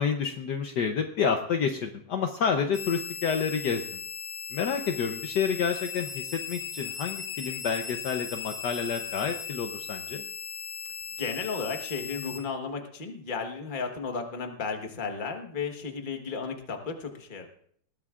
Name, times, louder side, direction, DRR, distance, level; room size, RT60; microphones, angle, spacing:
voice 1, 0.0-4.0 4.5-10.2, left 6 dB, 65° left, 5 dB, 1.3 m, -29 dB
sound 1, 2.7-12.4, left 7 dB, 85° left, 2.0 m, -38 dB
voice 2, 11.2-17.5, left 5 dB, 30° left, 4 dB, 1.3 m, -34 dB
20.0 x 14.5 x 2.5 m, 0.62 s
omnidirectional pair, 2.2 m